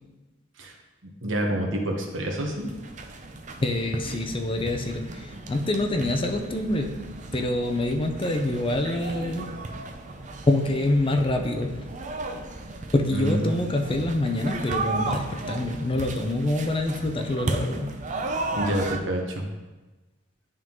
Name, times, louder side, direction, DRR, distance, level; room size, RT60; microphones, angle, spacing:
voice 1, 1.0-2.7 13.1-13.6 18.6-19.4, right 1 dB, 70° right, 1 dB, 1.1 m, -27 dB
sound 1, 2.0-19.0, right 2 dB, 40° right, 0.5 m, -35 dB
voice 2, 3.6-7.1 7.3-9.6 10.5-11.9 12.9-18.0, left 1 dB, 25° left, 5 dB, 0.5 m, -26 dB
10.5 x 3.7 x 3.0 m, 1.2 s
head